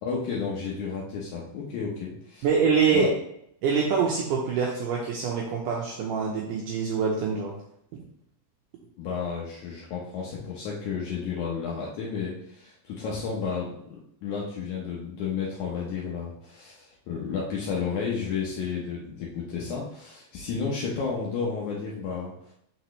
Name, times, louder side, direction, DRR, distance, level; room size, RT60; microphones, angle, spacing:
voice 1, 0.0-2.5 2.9-3.1 9.0-22.5, left 5 dB, 80° left, -4 dB, 1.7 m, -32 dB
voice 2, 2.4-3.1 3.6-7.6 7.9-8.0, right 5 dB, 85° right, -2 dB, 1.8 m, -25 dB
6.1 x 5.9 x 3.2 m, 0.74 s
omnidirectional pair, 4.8 m